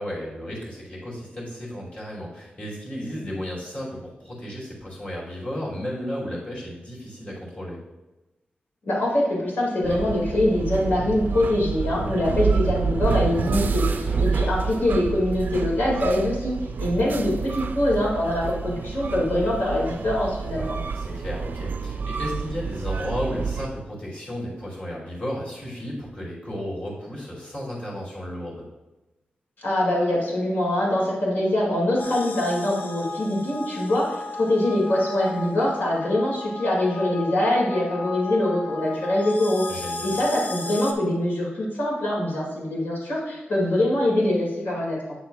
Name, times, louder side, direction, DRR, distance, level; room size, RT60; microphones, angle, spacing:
voice 1, 0.0-7.8 13.8-14.2 20.5-28.7 39.7-40.1, equal, 35° left, -5 dB, 2.6 m, -34 dB
voice 2, 8.8-13.8 14.3-16.5 16.8-20.8 29.6-39.6 40.0-45.2, left 1 dB, 75° left, -3 dB, 2.2 m, -23 dB
sound 1, 9.8-23.7, right 5 dB, 60° right, 0.3 m, -28 dB
sound 2, 32.0-40.9, left 2 dB, 55° left, 0.6 m, -34 dB
8.4 x 7.0 x 2.3 m, 1.1 s
wide cardioid pair, 150°, 3 cm